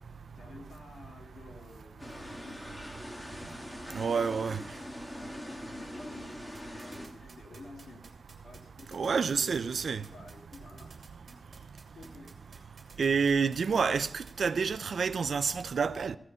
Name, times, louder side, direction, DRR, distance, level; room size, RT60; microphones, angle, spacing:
voice 1, 0.4-3.1 4.3-4.6 5.0-8.1 8.4-11.5 11.9-12.3, left 3 dB, 80° left, 2.6 m, -52 dB
sound 1, 2.0-7.1, left 1 dB, 15° left, 2.1 m, -43 dB
voice 2, 3.9-4.6 8.9-10.0 13.0-16.2, right 5 dB, 75° right, 0.5 m, -28 dB
sound 2, 6.5-14.3, right 3 dB, 55° right, 2.5 m, -54 dB
16.0 x 10.0 x 5.5 m
wide cardioid pair, 140°, 0 cm